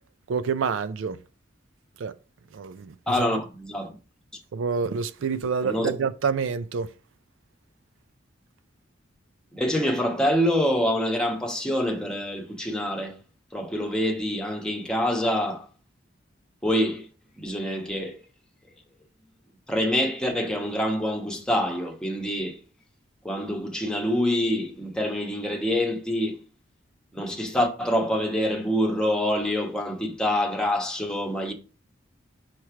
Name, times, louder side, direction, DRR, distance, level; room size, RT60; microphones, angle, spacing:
voice 1, 0.3-1.2 2.0-2.1 2.5-3.3 4.5-6.9, right 5 dB, 85° right, 0.4 m, -27 dB
voice 2, 3.1-4.0 4.3-4.4 5.6-5.9 9.5-13.2 13.5-15.7 16.6-17.1 17.4-18.2 19.7-22.6 23.2-26.4 27.1-31.5, left 1 dB, 5° left, 1.0 m, -26 dB
5.8 x 3.2 x 5.7 m
head